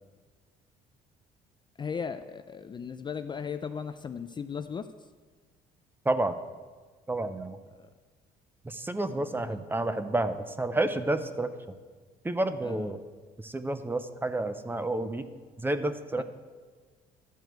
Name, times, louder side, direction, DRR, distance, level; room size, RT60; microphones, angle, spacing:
voice 1, 1.8-5.1 7.7-7.9 9.1-9.6 12.6-13.0 16.2-16.3, left 6 dB, 25° left, 10 dB, 0.4 m, -37 dB
voice 2, 6.1-6.4 7.1-7.6 8.6-11.5 12.2-13.0 13.4-15.3 15.6-16.2, right 2 dB, 10° right, 11 dB, 0.6 m, -30 dB
12.5 x 4.6 x 7.9 m, 1.4 s
cardioid pair, 110°, 17 cm